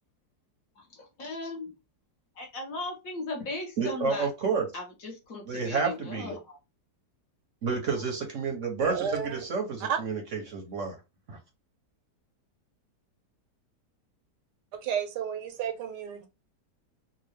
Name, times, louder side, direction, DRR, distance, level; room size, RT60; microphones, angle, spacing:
voice 1, 0.8-1.7 2.3-4.3 4.7-6.6 7.9-8.0, left 2 dB, 55° left, 1.5 m, -37 dB
voice 2, 3.8-4.7 5.5-6.3 7.6-11.0 11.3-11.4, right 5 dB, 55° right, 0.9 m, -30 dB
voice 3, 8.8-9.4 9.8-10.0 14.8-16.3, right 8 dB, 80° right, 1.3 m, -32 dB
3.7 x 2.3 x 3.2 m
omnidirectional pair, 1.8 m